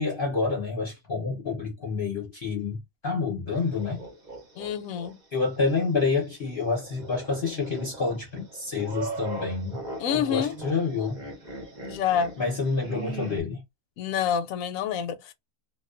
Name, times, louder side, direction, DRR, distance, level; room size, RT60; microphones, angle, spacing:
voice 1, 0.0-4.0 5.3-9.8 10.1-11.2 12.4-13.6, left 4 dB, 45° left, 0.8 m, -28 dB
sound 1, 3.5-5.1 5.5-5.6 6.7-13.4, right 3 dB, 40° right, 0.8 m, -39 dB
voice 2, 4.6-5.2 10.0-10.6 11.8-12.4 14.0-15.3, left 8 dB, 70° left, 0.9 m, -28 dB
2.4 x 2.3 x 2.4 m
omnidirectional pair, 1.6 m